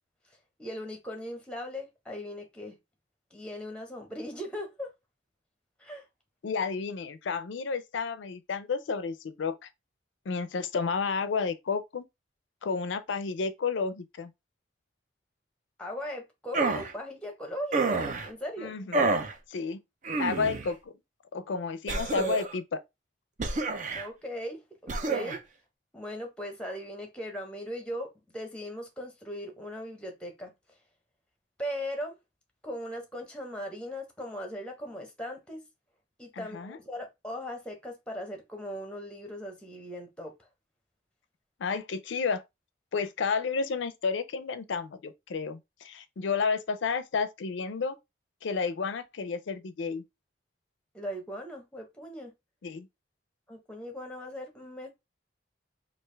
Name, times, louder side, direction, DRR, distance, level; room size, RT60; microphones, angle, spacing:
voice 1, 0.6-2.7 3.3-4.9 5.8-6.0 15.8-18.7 24.0-25.4 25.9-30.5 31.6-32.2 32.6-35.6 36.2-40.3 50.9-52.3 53.5-54.9, equal, 5° left, 0.8 m, -39 dB
voice 2, 6.4-9.7 10.3-12.0 12.6-14.3 18.6-19.1 19.5-19.8 20.2-20.9 21.3-22.8 36.3-36.8 41.6-42.4 42.9-48.0 48.4-50.0 52.6-52.9, left 5 dB, 85° left, 0.4 m, -31 dB
sound 1, 16.5-16.9 17.7-18.3 18.9-19.3 20.0-20.7 21.9-22.6 23.4-24.1 24.9-25.4, right 3 dB, 40° right, 0.5 m, -28 dB
3.3 x 2.5 x 3.2 m
head